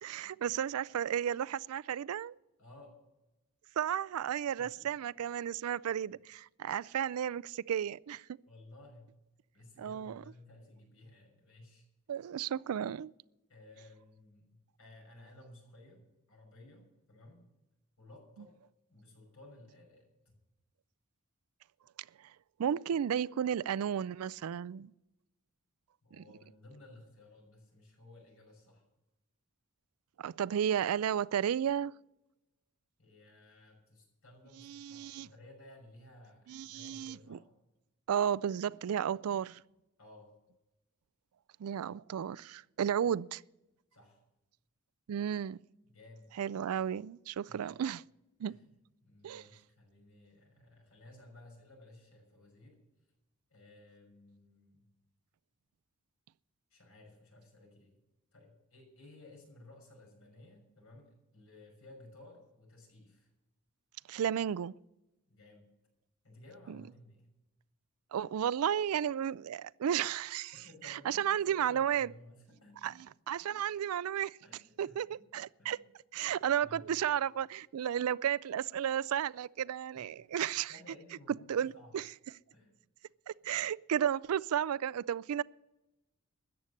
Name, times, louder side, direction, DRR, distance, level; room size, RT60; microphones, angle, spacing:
voice 1, 0.0-2.4 3.8-8.3 9.8-10.2 12.1-13.1 22.6-24.9 26.2-26.3 30.2-31.9 34.6-35.3 36.5-37.4 38.1-39.6 41.6-43.4 45.1-45.6 46.4-48.0 48.4-48.6 49.2-49.4 64.1-64.7 68.1-70.5 70.8-72.1 72.8-72.9 73.3-74.4 74.8-75.8 76.1-80.7 81.5-82.0 83.3-85.4, right 9 dB, 75° right, 0.4 m, -33 dB
voice 2, 2.6-2.9 4.6-5.1 8.5-9.1 9.5-11.8 13.5-17.5 18.0-18.6 18.9-20.1 26.0-28.8 33.0-37.5 40.0-40.3 43.9-44.2 45.9-46.3 47.5-47.7 48.5-48.7 49.0-52.8 53.5-54.8 56.7-58.0 58.3-63.3 65.3-65.7 66.2-67.3 70.5-73.0 74.4-75.3 75.6-75.9 76.3-76.8 79.9-80.3 80.7-82.0 82.5-82.8, left 2 dB, 70° left, 6.0 m, -56 dB
14.0 x 9.7 x 6.5 m
head